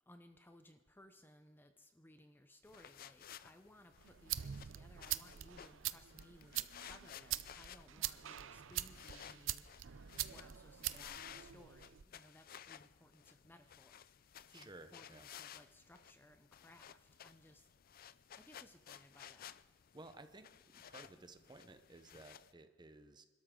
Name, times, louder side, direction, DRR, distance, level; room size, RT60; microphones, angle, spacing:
voice 1, 0.1-9.7 10.2-14.0 14.5-17.7 18.4-19.6, left 1 dB, 10° left, 7 dB, 0.7 m, -62 dB
sound 1, 2.7-22.5, left 9 dB, 50° left, 0.4 m, -57 dB
sound 2, 4.0-12.0, right 13 dB, 80° right, 0.6 m, -44 dB
voice 2, 14.5-15.3 19.9-23.2, right 2 dB, 20° right, 9 dB, 0.9 m, -56 dB
26.5 x 13.0 x 3.8 m, 1.4 s
head